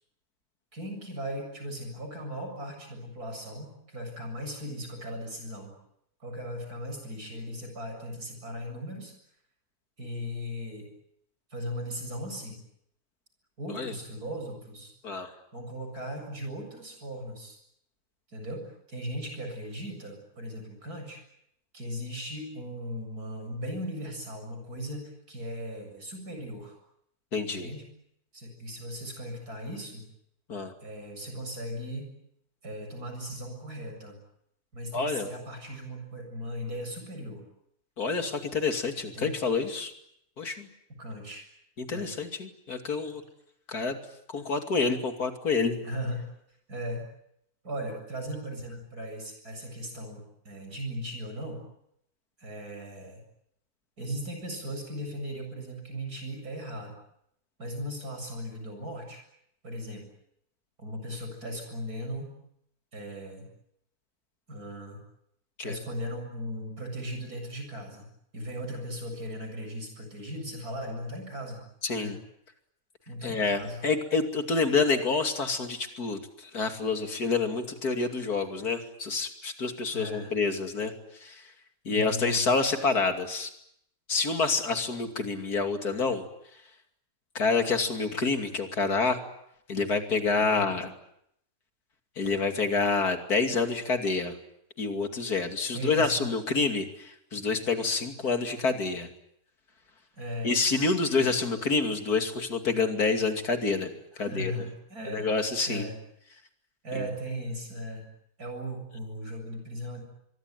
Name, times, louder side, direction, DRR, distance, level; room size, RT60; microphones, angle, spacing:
voice 1, 0.7-5.7 6.2-9.1 10.0-10.9 11.5-12.6 13.6-14.9 15.5-17.6 18.3-21.2 21.7-26.8 27.5-27.8 28.3-30.0 30.8-32.1 32.6-34.2 34.7-37.4 39.1-39.4 39.6-39.7 40.9-41.5 41.9-42.1 45.8-46.3 46.7-47.1 47.6-51.6 52.4-53.2 54.0-57.0 57.6-59.2 59.6-60.1 60.8-62.3 62.9-63.5 64.5-65.0 65.6-68.1 68.3-71.6 71.9-72.1 73.1-73.8 79.9-80.3 81.9-82.5 90.4-90.7 95.7-96.3 100.1-100.9 101.1-101.5 104.1-105.3 105.7-105.9 106.8-108.1 108.4-110.0, equal, 90° right, 4 dB, 8.0 m, -37 dB
voice 2, 27.3-27.7 30.5-30.7 34.9-35.3 38.0-39.9 40.4-40.7 41.8-43.2 43.7-44.0 44.3-45.8 65.6-65.7 71.8-72.2 73.2-80.9 81.2-81.4 81.8-83.5 84.1-86.2 87.3-89.2 89.7-90.9 92.2-94.4 94.8-99.1 100.4-104.6 105.1-105.9 106.9-107.1, left 4 dB, 90° left, 6 dB, 3.2 m, -28 dB
24.5 x 23.0 x 9.4 m, 0.76 s
omnidirectional pair, 1.6 m